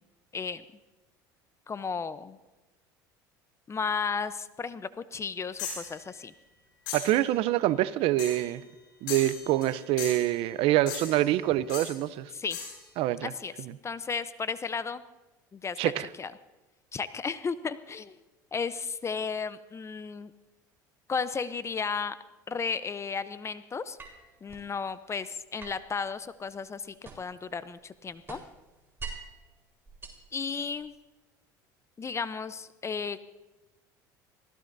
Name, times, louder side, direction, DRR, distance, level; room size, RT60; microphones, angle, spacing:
voice 1, 1.7-2.4 3.7-6.3 12.3-12.6 13.2-13.5 13.8-15.0 15.5-16.3 16.9-18.2 18.5-20.3 21.1-22.1 22.5-24.0 24.4-28.4 30.3-30.9 32.0-33.2, left 5 dB, 25° left, 14 dB, 0.7 m, -34 dB
sound 1, 5.6-5.9 6.9-7.2 8.2-8.5 9.1-9.7 10.0-10.3 10.9-11.3 11.7-11.9 12.5-12.8, left 6 dB, 80° left, 6.3 m, -37 dB
voice 2, 6.9-8.6 9.0-12.3 13.0-13.3 15.8-16.1, right 14 dB, 60° right, 16 dB, 0.7 m, -26 dB
sound 2, 24.0-24.7 25.6-27.5 27.8-29.4 29.9-30.9, right 4 dB, 20° right, 4.2 m, -45 dB
24.0 x 16.5 x 2.7 m, 1.1 s
hypercardioid pair, 80°, 11 cm